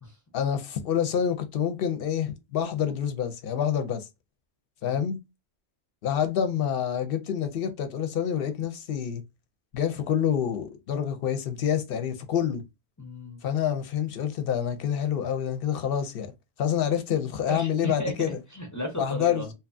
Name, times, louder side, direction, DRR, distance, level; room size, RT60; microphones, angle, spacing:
voice 1, 0.3-4.1 4.8-5.2 6.0-9.2 9.7-12.6 13.4-16.3 16.6-18.4 19.0-19.4, left 8 dB, 65° left, 0.7 m, -27 dB
voice 2, 13.0-13.4 17.5-19.5, equal, 20° left, 0.5 m, -35 dB
2.8 x 2.3 x 2.4 m
omnidirectional pair, 1.1 m